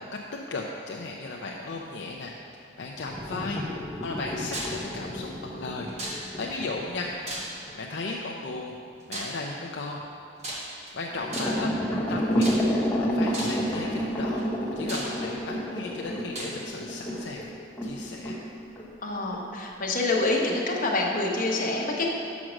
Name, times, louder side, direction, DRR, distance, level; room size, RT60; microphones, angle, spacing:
voice 1, 0.5-7.1 7.7-8.7 9.1-10.0 10.9-11.7 12.1-17.5 17.8-18.4, left 3 dB, 60° left, -1 dB, 0.5 m, -36 dB
sound 1, 3.1-7.7 11.1-18.0 18.2-18.4 18.8-18.9 19.3-19.4, equal, 5° left, 1.0 m, -30 dB
sound 2, 4.5-4.8 6.0-6.5 7.3-7.8 9.1-9.4 10.4-10.9 11.3-11.7 12.4-12.9 13.3-13.7 14.4-14.5 14.9-15.6 16.3-16.6, right 1 dB, 35° right, 1.1 m, -35 dB
voice 2, 19.0-22.1, left 2 dB, 45° left, -2 dB, 1.0 m, -26 dB
6.3 x 6.1 x 6.1 m, 2.5 s
head